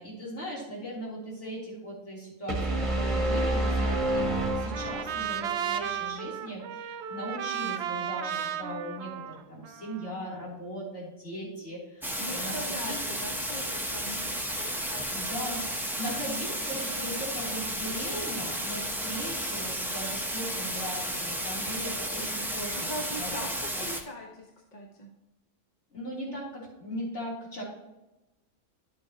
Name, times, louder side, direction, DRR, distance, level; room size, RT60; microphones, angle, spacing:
voice 1, 0.0-13.0 15.1-22.9 23.2-23.4 23.8-23.9 25.9-27.6, equal, 65° left, -6 dB, 3.7 m, -38 dB
sound 1, 2.5-5.4, right 1 dB, 25° right, 1.2 m, -28 dB
Trumpet, 3.9-10.2, right 9 dB, 65° right, 0.8 m, -35 dB
sound 2, 12.0-24.0, equal, ahead, 0.7 m, -33 dB
voice 2, 12.2-15.3 22.7-25.1, equal, 35° left, 0 dB, 1.1 m, -41 dB
11.5 x 7.6 x 2.9 m, 0.99 s
omnidirectional pair, 1.3 m